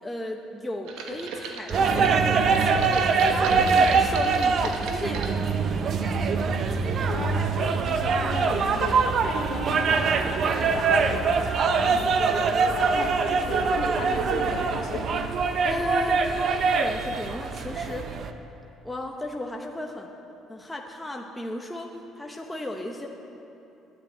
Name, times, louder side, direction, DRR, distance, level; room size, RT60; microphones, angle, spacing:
voice 1, 0.0-3.1 3.5-6.5 15.6-18.1 18.8-20.1 20.5-21.9 22.2-23.1, left 1 dB, 10° left, 1 dB, 0.9 m, -35 dB
sound 1, 0.9-5.4 5.9-6.4 6.6-6.7, right 5 dB, 85° right, 1.1 m, -36 dB
sound 2, 1.7-18.3, right 5 dB, 50° right, 0.7 m, -23 dB
voice 2, 7.1-9.1 9.5-11.3 11.7-15.3, left 4 dB, 60° left, -1 dB, 2.1 m, -35 dB
10.0 x 9.6 x 8.0 m, 2.9 s
cardioid pair, 110°, 0 cm